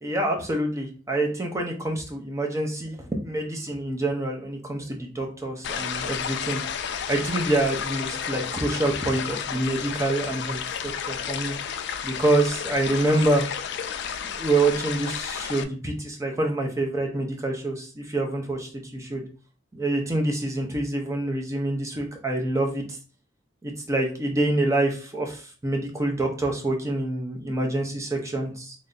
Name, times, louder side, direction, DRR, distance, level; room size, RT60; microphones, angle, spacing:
voice 1, 0.0-11.5 12.0-13.5 14.3-19.2 19.7-22.8 23.6-28.7, right 2 dB, 15° right, 1 dB, 0.6 m, -26 dB
sound 1, 5.6-15.6, left 7 dB, 60° left, 0.3 m, -32 dB
3.2 x 2.5 x 3.8 m, 0.39 s
head